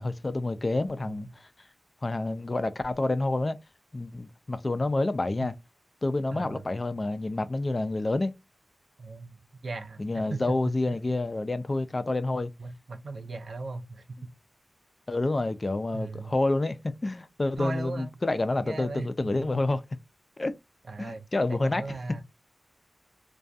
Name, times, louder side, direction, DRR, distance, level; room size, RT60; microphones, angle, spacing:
voice 1, 0.0-1.5 2.0-3.6 3.9-5.5 6.0-8.3 10.0-12.5 15.1-19.8 20.4-20.5 21.0-21.8, left 2 dB, 35° left, 0.3 m, -28 dB
voice 2, 6.3-6.6 9.0-11.0 12.6-14.3 15.9-16.3 17.6-18.1 18.6-19.8 20.9-22.2, right 3 dB, 75° right, 0.5 m, -38 dB
2.3 x 2.2 x 2.6 m
wide cardioid pair, 75°, 0 cm